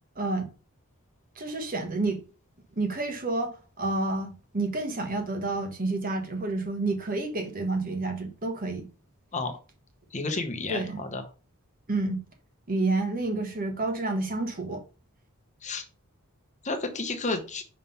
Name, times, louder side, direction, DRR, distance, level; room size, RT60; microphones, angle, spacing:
voice 1, 0.1-0.5 1.4-2.2 2.8-8.9 10.7-11.0 11.9-12.2 12.7-14.8, right 2 dB, 40° right, 1.4 m, -29 dB
voice 2, 10.1-11.2 15.6-15.8 16.6-17.6, left 3 dB, 30° left, 0.9 m, -31 dB
5.7 x 3.7 x 5.5 m
head